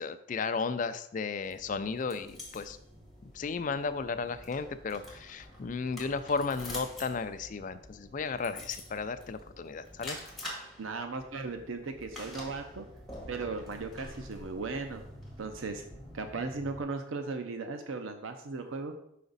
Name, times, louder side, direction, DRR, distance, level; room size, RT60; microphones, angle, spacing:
voice 1, 0.0-2.8 3.2-10.2, left 4 dB, 40° left, 11 dB, 0.3 m, -34 dB
sound 1, 1.4-16.8, left 1 dB, ahead, 1.6 m, -47 dB
voice 2, 10.8-12.9 13.3-15.0 15.4-15.8 16.1-18.9, right 3 dB, 90° right, 7 dB, 0.6 m, -37 dB
5.8 x 5.0 x 4.0 m, 0.74 s
head